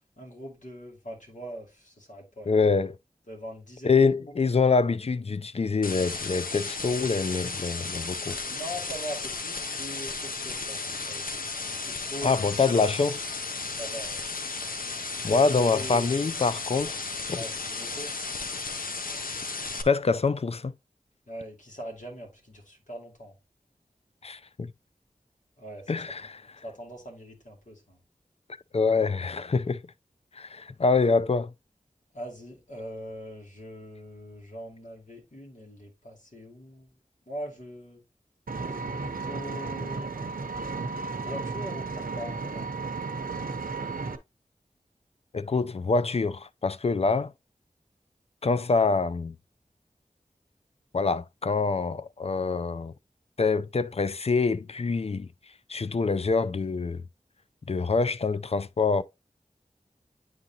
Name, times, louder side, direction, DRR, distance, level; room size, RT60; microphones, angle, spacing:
voice 1, 0.2-2.7 3.3-4.1 8.4-12.8 13.8-14.2 15.3-16.2 17.3-18.1 21.3-23.3 25.6-26.0 26.6-28.0 32.1-36.9 37.3-38.0 38.7-40.1 41.1-42.7, equal, 60° left, 2.4 m, -41 dB
voice 2, 2.5-3.0 3.8-8.4 12.2-13.2 15.2-17.0 17.3-17.4 19.3-19.4 19.8-20.7 24.2-24.7 25.9-26.4 28.7-29.8 30.4-31.5 45.3-47.3 48.4-49.4 50.9-52.9 53.4-55.3 55.7-57.0 57.7-59.0, left 4 dB, 45° left, 0.4 m, -25 dB
sound 1, 5.8-19.8, left 4 dB, 80° left, 0.7 m, -34 dB
Vehicle, 38.5-44.2, right 4 dB, 80° right, 0.7 m, -34 dB
9.3 x 3.9 x 2.8 m
wide cardioid pair, 45°, 15 cm